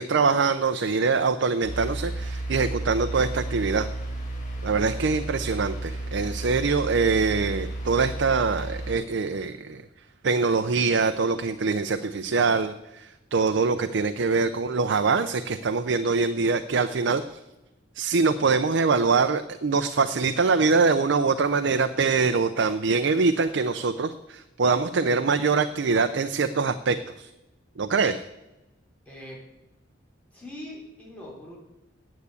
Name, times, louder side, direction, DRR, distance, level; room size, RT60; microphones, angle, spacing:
voice 1, 0.0-3.9 4.6-9.8 10.2-17.4 18.0-27.3 27.8-28.2, right 4 dB, 65° right, 9 dB, 0.5 m, -24 dB
sound 1, 1.6-8.9, right 2 dB, 40° left, 2.3 m, -33 dB
voice 2, 29.1-29.4 30.3-31.6, left 1 dB, 5° left, -5 dB, 3.7 m, -41 dB
9.4 x 8.2 x 8.3 m, 0.97 s
head